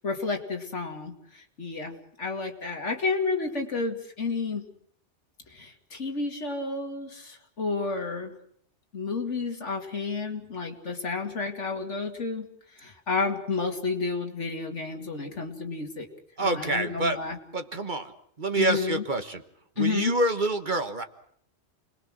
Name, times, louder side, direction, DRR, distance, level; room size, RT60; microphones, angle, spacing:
voice 1, 0.0-4.7 5.5-8.3 8.9-12.5 12.8-16.1 16.4-17.4 18.6-19.0 19.8-20.1, left 4 dB, 80° left, 4 dB, 2.8 m, -31 dB
voice 2, 16.4-17.2 17.5-18.1 18.4-19.4 19.8-21.0, right 2 dB, 40° right, 8 dB, 1.5 m, -27 dB
29.0 x 21.0 x 6.3 m, 0.66 s
omnidirectional pair, 1.2 m